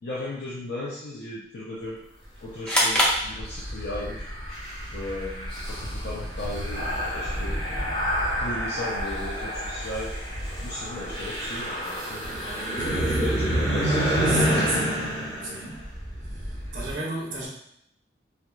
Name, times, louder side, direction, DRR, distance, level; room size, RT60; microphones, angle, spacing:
voice 1, 0.0-2.0 2.4-4.3 4.9-6.8 7.1-7.6 8.4-10.2 10.6-12.2 12.7-14.9, left 1 dB, 55° left, -6 dB, 0.5 m, -35 dB
sound 1, 2.7-4.1, equal, 5° left, 0.5 m, -24 dB
sound 2, 3.1-16.9, equal, 25° left, 1.1 m, -29 dB
voice 2, 12.2-13.3 14.3-15.0 15.4-15.9 16.2-17.5, right 2 dB, 45° right, -4 dB, 0.6 m, -34 dB
3.1 x 3.0 x 2.3 m, 0.72 s
head